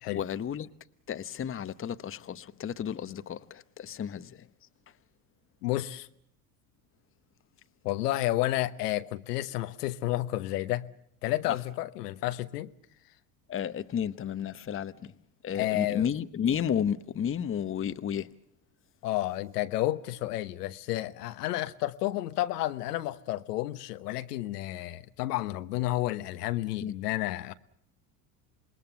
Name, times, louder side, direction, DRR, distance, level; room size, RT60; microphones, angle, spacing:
voice 1, 0.1-0.7 1.1-4.4 11.4-11.6 13.5-15.1 15.4-18.3 26.8-26.9, left 8 dB, 25° left, 1.0 m, -32 dB
voice 2, 5.6-6.1 7.8-10.9 11.2-12.7 15.5-16.1 19.0-27.5, left 16 dB, 75° left, 1.1 m, -31 dB
27.0 x 21.0 x 7.0 m
hypercardioid pair, 75°, 47 cm